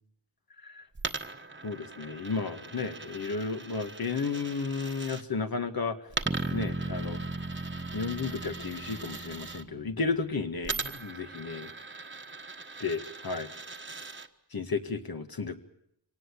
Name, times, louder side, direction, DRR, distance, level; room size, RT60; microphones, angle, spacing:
Coin (dropping), 0.9-5.2 6.1-9.6 10.6-14.3, right 4 dB, 30° right, 1.3 m, -40 dB
voice 1, 1.6-6.0 6.5-7.2 7.9-11.7 12.8-13.5 14.5-15.5, left 4 dB, 65° left, 7 dB, 1.9 m, -33 dB
sound 1, 6.3-10.3, right 2 dB, 15° right, 0.8 m, -37 dB
25.0 x 18.5 x 8.6 m, 0.77 s
wide cardioid pair, 95°, 39 cm